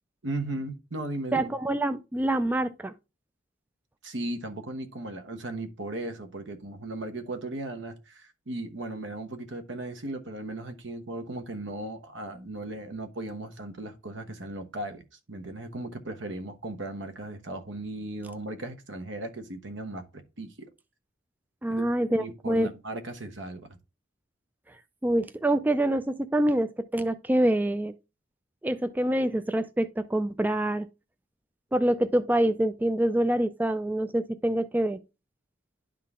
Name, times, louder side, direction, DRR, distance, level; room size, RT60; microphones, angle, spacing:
voice 1, 0.2-1.5 4.0-20.7 21.7-21.8 22.2-23.8, right 2 dB, 70° right, 1.1 m, -37 dB
voice 2, 1.3-2.9 21.6-22.7 25.0-27.9 28.6-30.9 31.7-35.0, right 1 dB, 10° right, 0.3 m, -26 dB
11.0 x 3.8 x 3.6 m
head